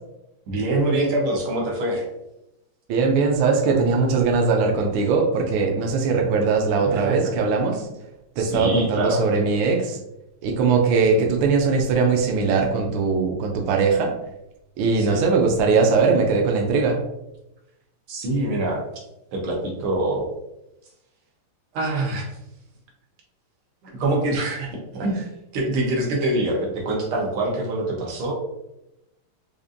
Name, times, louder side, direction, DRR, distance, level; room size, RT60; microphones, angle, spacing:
voice 1, 0.5-2.1 6.8-7.4 8.4-9.3 14.9-15.2 18.1-18.8 19.3-20.3 21.7-22.4 23.8-28.3, right 1 dB, 90° right, -1 dB, 1.8 m, -25 dB
voice 2, 2.9-7.9 8.4-10.0 10.4-14.1 14.8-17.0, right 4 dB, 75° right, 2 dB, 1.3 m, -20 dB
5.0 x 2.5 x 2.5 m, 0.88 s
omnidirectional pair, 2.3 m